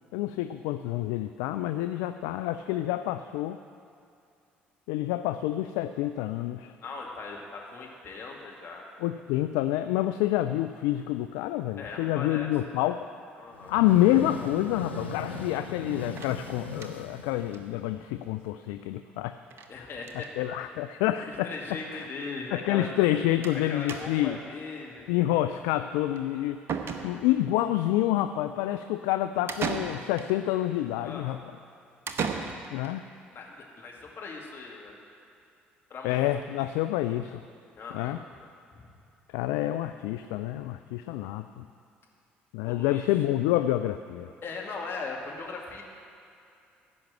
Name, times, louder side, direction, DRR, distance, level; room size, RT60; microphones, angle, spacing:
voice 1, 0.1-3.6 4.9-6.7 9.0-13.1 13.7-19.4 19.8-19.9 20.4-21.5 21.9-22.1 22.5-24.4 25.1-26.6 27.0-31.4 32.7-33.1 36.0-37.4 37.9-38.2 39.3-41.7 42.5-44.3, left 14 dB, 65° left, 10 dB, 0.3 m, -28 dB
voice 2, 6.8-8.9 11.8-12.5 13.4-13.8 15.4-15.5 19.7-20.3 21.2-22.9 23.5-25.1 31.0-31.4 33.3-35.0 35.9-36.3 37.7-38.2 42.6-43.1 44.4-45.8, left 4 dB, 40° left, -1 dB, 2.2 m, -39 dB
sound 1, 13.5-18.1, left 3 dB, 85° left, 0.7 m, -39 dB
sound 2, 16.2-17.2 17.5-17.6 17.9-18.0 18.2-18.3 19.5-19.7 20.0-20.4 21.2-21.3 21.6-21.7 23.4-23.6 23.9-24.4 26.2-26.3 26.7-27.5 29.5-30.4 32.1-32.9, right 5 dB, 45° right, 1.0 m, -35 dB
15.0 x 5.8 x 7.6 m, 2.6 s
figure-of-eight pair, 50°, 6 cm